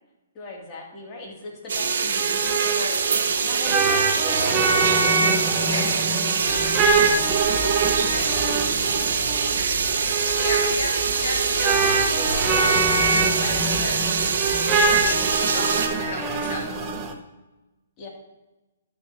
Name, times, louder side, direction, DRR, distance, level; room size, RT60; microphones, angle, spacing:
voice 1, 0.3-5.3 5.8-7.2 11.1-11.4 18.0-18.1, left 2 dB, 25° left, -3 dB, 2.6 m, -40 dB
sound 1, 1.7-15.9, right 5 dB, 65° right, 1.0 m, -24 dB
sound 2, 1.8-17.1, right 4 dB, 20° right, 1.0 m, -24 dB
voice 2, 5.6-5.9 8.0-8.4 10.3-14.3 15.0-16.8, left 2 dB, 65° left, 0 dB, 1.5 m, -34 dB
sound 3, 6.4-15.4, left 3 dB, 10° left, 2.6 m, -39 dB
12.0 x 6.6 x 2.8 m, 1.1 s
hypercardioid pair, 140°, 0 cm